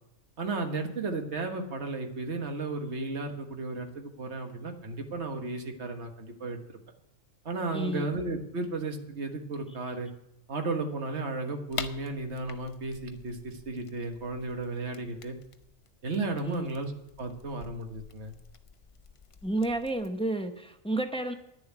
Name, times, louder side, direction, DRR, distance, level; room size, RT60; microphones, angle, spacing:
voice 1, 0.4-6.8 7.5-10.1 10.5-15.4 16.0-16.9 17.2-18.3, right 3 dB, 55° right, 5 dB, 1.6 m, -34 dB
voice 2, 7.7-8.1 16.4-16.7 19.4-21.3, right 1 dB, 5° left, 6 dB, 0.7 m, -31 dB
sound 1, 11.7-20.1, left 5 dB, 45° left, 0.4 m, -46 dB
10.5 x 7.1 x 9.3 m, 0.80 s
omnidirectional pair, 1.4 m